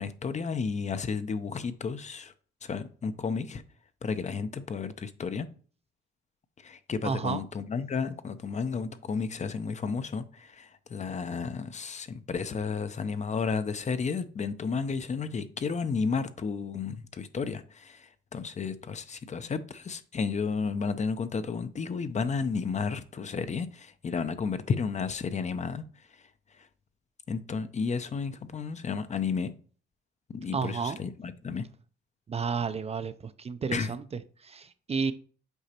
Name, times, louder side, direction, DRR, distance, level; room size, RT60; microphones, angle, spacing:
voice 1, 0.0-2.3 2.6-3.6 4.0-5.5 6.6-18.0 18.3-25.8 27.3-29.5 30.3-31.7 33.7-33.9, left 5 dB, 35° left, 0.6 m, -32 dB
voice 2, 7.0-7.4 30.5-31.0 32.3-35.1, right 5 dB, 30° right, 0.5 m, -32 dB
8.0 x 5.0 x 2.9 m
cardioid pair, 90°, 20 cm